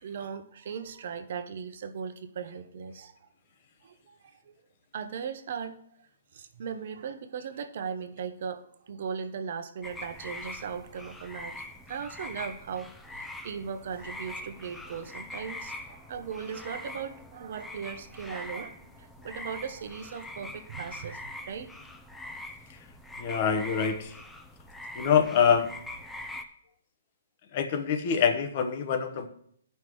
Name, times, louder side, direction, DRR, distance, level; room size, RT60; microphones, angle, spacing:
voice 1, 0.0-3.1 3.8-4.5 4.9-5.8 6.3-11.5 11.9-21.7, right 7 dB, 60° right, 8 dB, 0.8 m, -38 dB
sound 1, 9.8-26.4, left 1 dB, 5° left, 0.6 m, -43 dB
voice 2, 23.2-24.1 24.9-25.7 27.5-29.3, left 7 dB, 45° left, 8 dB, 1.0 m, -25 dB
14.0 x 5.6 x 3.1 m, 0.67 s
hypercardioid pair, 140°, 0 cm